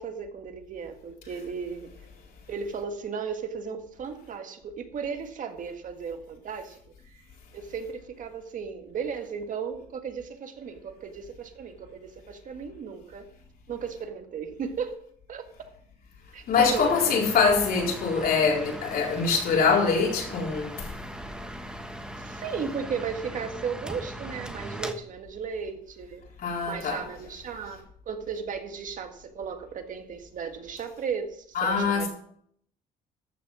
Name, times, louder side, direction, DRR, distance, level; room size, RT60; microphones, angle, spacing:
voice 1, 0.0-1.9 2.5-6.8 7.1-7.2 7.5-13.3 13.7-15.0 15.3-15.5 16.3-17.1 22.2-26.2 26.7-32.1, right 6 dB, 50° right, 1.8 m, -35 dB
voice 2, 16.5-20.9 26.4-27.0 31.5-32.1, left 5 dB, 60° left, 4.1 m, -24 dB
sound 1, 16.5-24.9, equal, 5° right, 1.2 m, -39 dB
14.0 x 6.5 x 6.2 m
cardioid pair, 110°, 17 cm